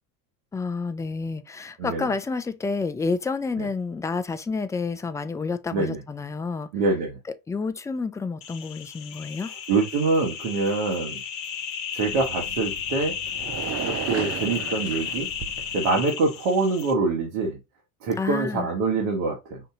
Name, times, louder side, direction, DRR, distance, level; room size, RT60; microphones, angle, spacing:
voice 1, 0.5-6.7 7.5-9.5 18.2-18.7, left 4 dB, 5° left, 0.4 m, -29 dB
voice 2, 6.7-7.2 9.7-11.2 11.9-13.1 13.8-15.3 15.7-17.6 18.0-19.6, right 3 dB, 65° right, 1.7 m, -25 dB
sound 1, 8.4-16.9, left 8 dB, 45° left, 1.1 m, -33 dB
sound 2, 12.1-15.8, right 9 dB, 35° right, 0.7 m, -35 dB
5.5 x 2.7 x 3.6 m
hypercardioid pair, 75°, 44 cm